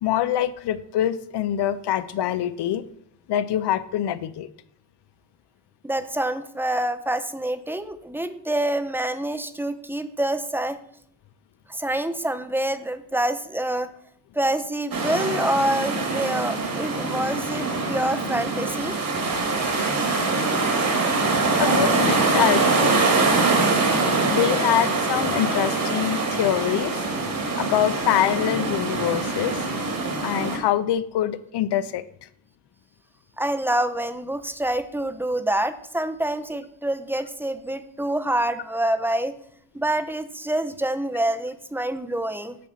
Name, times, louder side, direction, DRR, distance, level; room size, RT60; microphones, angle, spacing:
voice 1, 0.0-2.8 3.3-4.5 21.6-23.0 24.3-27.0 27.6-29.6 30.2-32.0, left 11 dB, 65° left, 14 dB, 0.6 m, -24 dB
voice 2, 5.8-10.8 11.7-13.9 14.4-19.0 33.4-39.3 39.7-42.6, right 1 dB, 5° right, 10 dB, 0.6 m, -26 dB
sound 1, 14.9-30.6, right 3 dB, 50° right, 1.7 m, -23 dB
8.6 x 3.1 x 5.5 m, 0.68 s
supercardioid pair, 60°, 45 cm